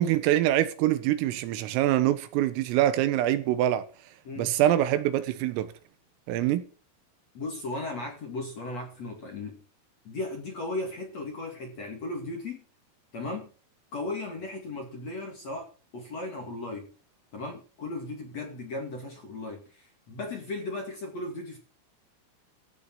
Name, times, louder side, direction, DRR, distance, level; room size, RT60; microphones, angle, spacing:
voice 1, 0.0-3.8 4.4-5.7 6.3-6.7, right 13 dB, 80° right, 3.8 m, -24 dB
voice 2, 4.2-4.6 7.3-9.6 10.0-12.6 13.1-13.5 13.9-15.7 15.9-16.9 17.3-21.6, left 2 dB, 45° left, 2.4 m, -36 dB
15.5 x 6.9 x 7.5 m
omnidirectional pair, 6.0 m